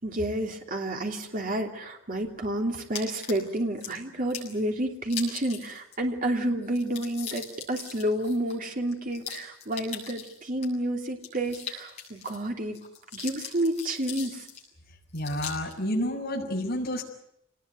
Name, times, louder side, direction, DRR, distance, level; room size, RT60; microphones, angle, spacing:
voice 1, 0.0-12.8 13.1-14.5, right 1 dB, 45° right, 2 dB, 3.0 m, -30 dB
sound 1, 2.9-3.9 4.3-4.6 5.0-6.0 6.2-6.3 6.6-10.7 11.2-12.4 12.7-14.7 15.1-15.7, left 7 dB, 30° left, 7.7 m, -40 dB
voice 2, 15.1-17.0, equal, 50° left, -2 dB, 5.9 m, -29 dB
26.5 x 19.5 x 9.4 m, 0.75 s
head